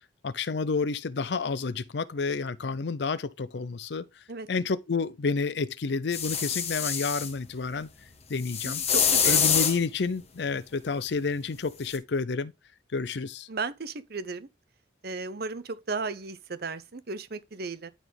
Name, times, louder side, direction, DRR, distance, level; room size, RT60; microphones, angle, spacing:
voice 1, 0.2-4.1 4.5-7.9 8.3-8.8 9.2-12.5 12.9-13.5, left 4 dB, 60° left, 0.5 m, -30 dB
sound 1, 6.1-7.3 8.4-9.8 11.9-12.0, left 7 dB, 35° left, 1.3 m, -25 dB
voice 2, 8.6-9.4 13.5-14.5 15.0-17.9, right 4 dB, 55° right, 0.8 m, -35 dB
11.5 x 4.1 x 3.4 m
head